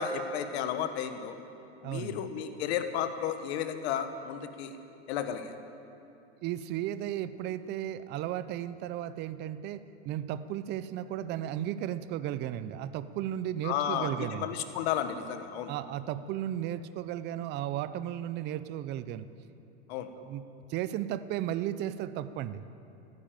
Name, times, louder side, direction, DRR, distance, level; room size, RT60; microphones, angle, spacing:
voice 1, 0.0-1.4 1.8-4.8 5.1-5.5 13.6-15.7 19.9-20.1, left 8 dB, 65° left, 8 dB, 1.4 m, -33 dB
voice 2, 1.8-2.3 6.4-14.5 15.7-19.3 20.2-20.4 20.7-22.6, right 11 dB, 30° right, 14 dB, 0.5 m, -35 dB
14.0 x 9.9 x 9.1 m, 2.7 s
supercardioid pair, 135°, 34 cm